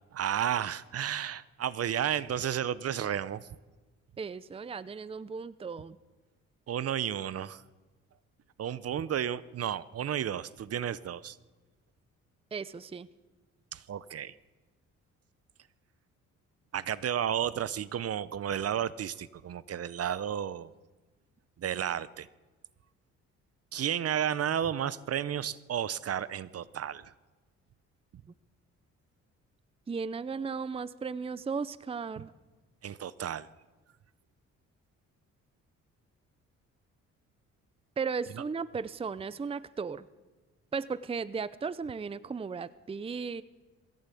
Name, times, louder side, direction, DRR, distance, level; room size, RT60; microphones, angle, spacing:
voice 1, 0.1-3.5 6.7-7.6 8.6-11.4 13.7-14.3 16.7-20.7 21.6-22.3 23.7-27.1 32.2-32.3 32.8-33.5 38.3-38.4, right 9 dB, 50° right, 18 dB, 0.8 m, -32 dB
voice 2, 4.2-6.0 12.5-13.1 29.9-32.3 38.0-40.0 40.7-43.4, right 5 dB, 20° right, 17 dB, 0.6 m, -36 dB
20.5 x 16.0 x 8.4 m, 1.3 s
cardioid pair, 90°, 30 cm